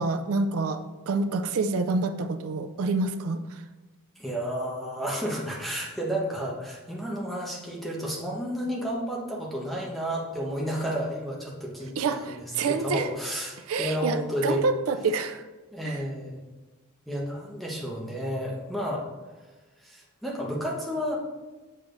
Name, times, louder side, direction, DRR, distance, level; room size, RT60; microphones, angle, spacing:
voice 1, 0.0-3.6 12.0-13.1 13.7-15.4 15.8-16.0, right 3 dB, 85° right, 9 dB, 0.4 m, -27 dB
voice 2, 4.2-14.6 15.7-16.4 17.1-19.1 19.8-21.2, equal, ahead, -3 dB, 1.1 m, -31 dB
7.0 x 6.7 x 2.6 m, 1.2 s
head